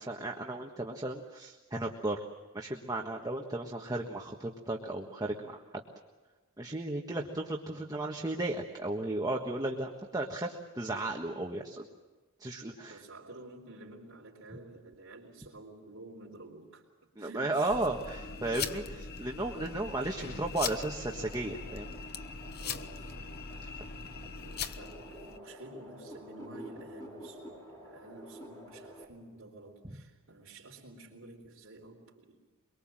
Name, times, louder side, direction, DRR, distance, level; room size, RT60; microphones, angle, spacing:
voice 1, 0.0-2.2 2.5-5.6 6.6-11.9 12.4-13.0 17.2-18.8 19.2-22.0 23.6-23.7 29.8-29.9, right 2 dB, 20° right, 0 dB, 1.5 m, -34 dB
voice 2, 12.7-17.9 18.2-18.3 18.6-18.9 22.5-32.4, right 2 dB, 65° right, -3 dB, 3.8 m, -51 dB
sound 1, 17.7-25.4, left 5 dB, 50° left, 0.9 m, -41 dB
sound 2, 21.1-29.0, equal, 15° left, 6.1 m, -50 dB
24.0 x 23.0 x 7.6 m, 1.3 s
head